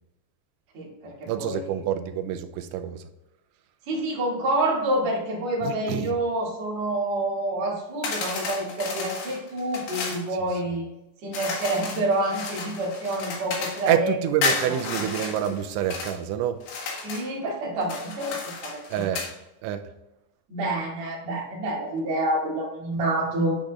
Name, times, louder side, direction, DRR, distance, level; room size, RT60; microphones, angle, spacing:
voice 1, 0.7-1.6 3.9-10.9 11.2-14.1 14.7-14.8 17.0-19.1 20.5-23.6, right 1 dB, 45° right, -7 dB, 2.8 m, -28 dB
voice 2, 1.3-3.1 5.6-6.2 13.9-16.6 18.9-19.2 19.6-19.8, right 10 dB, 85° right, 9 dB, 2.9 m, -27 dB
sound 1, 8.0-10.2 11.3-13.9 14.4-16.2 16.6-17.3 17.8-19.3, left 4 dB, 65° left, 3.2 m, -32 dB
10.5 x 5.2 x 2.4 m, 0.94 s
omnidirectional pair, 5.3 m